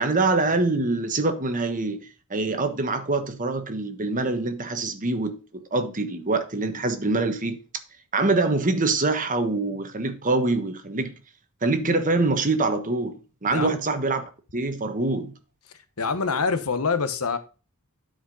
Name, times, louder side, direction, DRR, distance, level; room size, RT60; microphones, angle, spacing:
voice 1, 0.0-7.6 8.1-11.1 11.6-14.2 14.5-15.3, right 3 dB, 35° right, 1.3 m, -25 dB
voice 2, 16.0-17.4, left 5 dB, 70° left, 1.1 m, -25 dB
11.0 x 5.1 x 4.0 m
head